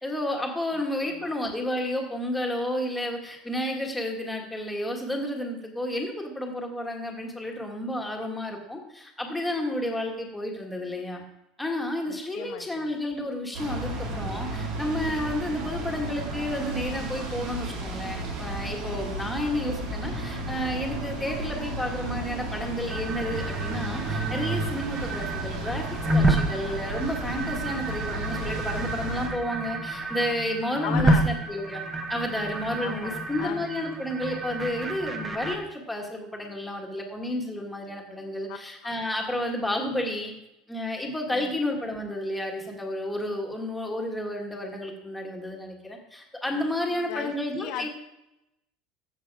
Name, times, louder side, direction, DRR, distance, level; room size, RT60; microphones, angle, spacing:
voice 1, 0.0-11.2 11.6-25.8 26.1-31.8 32.1-40.3 40.7-47.9, left 1 dB, 5° left, 1 dB, 1.6 m, -31 dB
voice 2, 0.8-1.3 12.1-12.9 30.8-31.3 32.8-33.7 38.5-38.6 38.8-38.9 41.3-41.5 47.1-47.9, left 12 dB, 60° left, 5 dB, 0.6 m, -37 dB
sound 1, 13.5-29.3, right 2 dB, 75° right, 3.2 m, -33 dB
sound 2, 22.9-35.6, right 2 dB, 15° right, 1.0 m, -29 dB
14.0 x 5.8 x 4.7 m, 0.90 s
cardioid pair, 165°, 0 cm